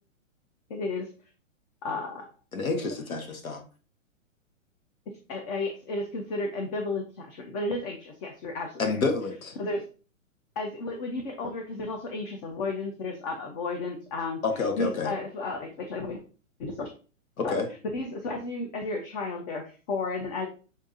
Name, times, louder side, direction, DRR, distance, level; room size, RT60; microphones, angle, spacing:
voice 1, 0.7-1.1 1.8-2.3 5.3-9.0 9.6-9.8 10.6-14.4 14.8-16.2 16.6-16.9 17.4-17.5 17.9-20.5, left 3 dB, 30° left, 4 dB, 0.7 m, -33 dB
voice 2, 2.5-3.6 8.8-9.5 14.4-15.1 17.4-17.7, left 4 dB, 85° left, 5 dB, 1.1 m, -28 dB
6.3 x 2.7 x 2.6 m, 0.37 s
hypercardioid pair, 125°, 41 cm